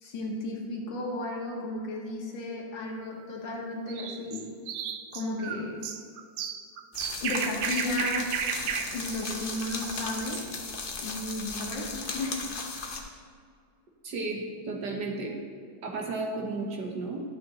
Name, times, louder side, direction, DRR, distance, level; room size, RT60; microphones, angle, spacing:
voice 1, 0.0-4.5 5.1-5.8 7.2-8.4 8.6-10.4 11.0-12.5, left 2 dB, 75° left, -1 dB, 2.0 m, -34 dB
sound 1, 3.9-10.5, right 8 dB, 85° right, 1.4 m, -34 dB
sound 2, 6.9-13.0, left 4 dB, 45° left, 0.7 m, -37 dB
voice 2, 14.0-15.4 15.8-17.2, right 3 dB, 65° right, 0 dB, 1.7 m, -33 dB
12.0 x 7.8 x 3.0 m, 2.2 s
omnidirectional pair, 2.1 m